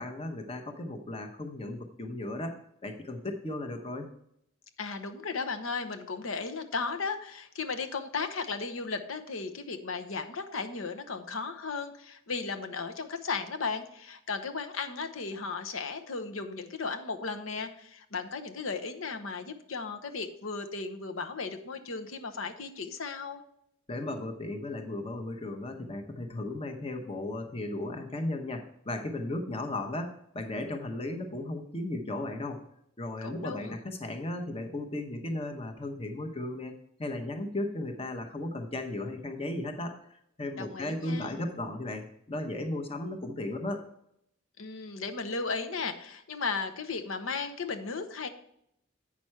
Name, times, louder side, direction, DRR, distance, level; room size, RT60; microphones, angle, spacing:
voice 1, 0.0-2.6 2.8-4.1 23.9-32.6 33.0-43.8, left 2 dB, 30° left, 5 dB, 0.9 m, -35 dB
voice 2, 4.8-23.4 33.2-33.8 40.6-41.4 44.6-48.3, left 4 dB, 75° left, 7 dB, 0.9 m, -35 dB
8.6 x 6.0 x 4.5 m, 0.75 s
head